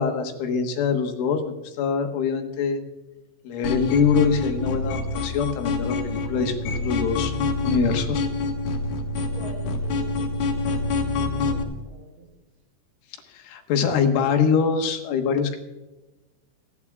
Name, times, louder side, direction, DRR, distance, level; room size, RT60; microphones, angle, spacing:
voice 1, 0.0-2.8 3.5-7.3 7.6-8.3 13.3-15.6, left 6 dB, 75° left, 3 dB, 3.9 m, -24 dB
sound 1, 3.6-11.6, left 3 dB, 60° left, 3.2 m, -26 dB
voice 2, 8.8-12.3, right 1 dB, 85° right, 0 dB, 7.9 m, -46 dB
29.0 x 10.0 x 2.4 m, 1.1 s
omnidirectional pair, 5.8 m